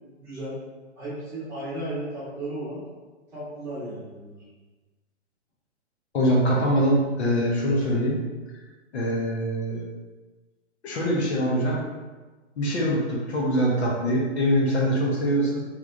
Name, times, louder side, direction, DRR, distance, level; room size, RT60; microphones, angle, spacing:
voice 1, 0.2-0.6 1.0-2.8 3.3-4.4, right 1 dB, 5° right, -13 dB, 1.3 m, -34 dB
voice 2, 6.1-8.2 8.9-9.9 10.8-11.9 12.6-15.7, equal, 65° left, -2 dB, 1.1 m, -23 dB
3.4 x 3.2 x 3.8 m, 1.3 s
hypercardioid pair, 170°, 36 cm